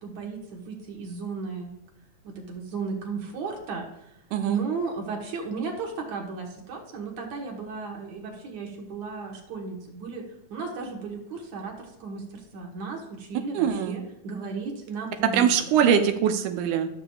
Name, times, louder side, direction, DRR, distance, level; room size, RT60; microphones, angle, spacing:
voice 1, 0.0-1.7 2.2-4.1 4.4-10.2 10.5-11.8 12.0-15.7, right 4 dB, 65° right, 1 dB, 2.5 m, -35 dB
voice 2, 4.3-4.6 13.5-14.0 15.3-16.9, right 8 dB, 80° right, 7 dB, 2.1 m, -22 dB
13.5 x 6.8 x 2.3 m, 0.84 s
omnidirectional pair, 3.6 m